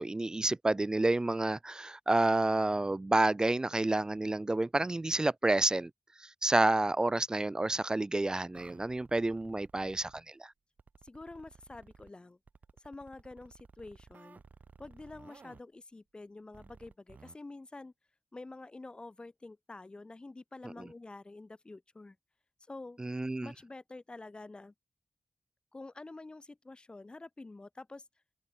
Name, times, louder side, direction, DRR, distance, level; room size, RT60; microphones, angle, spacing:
voice 1, 0.0-5.9 6.2-10.5 23.0-23.5, right 2 dB, 25° right, 0.6 m, -29 dB
sound 1, 8.5-10.2 10.8-12.1 12.5-15.6 16.5-17.4, right 5 dB, 80° right, 1.7 m, -56 dB
voice 2, 11.0-12.4 12.8-14.4 14.8-17.9 18.3-22.2 22.6-23.0 23.4-24.7 25.7-28.1, left 2 dB, 35° left, 1.7 m, -48 dB
wide cardioid pair, 95°, 3 cm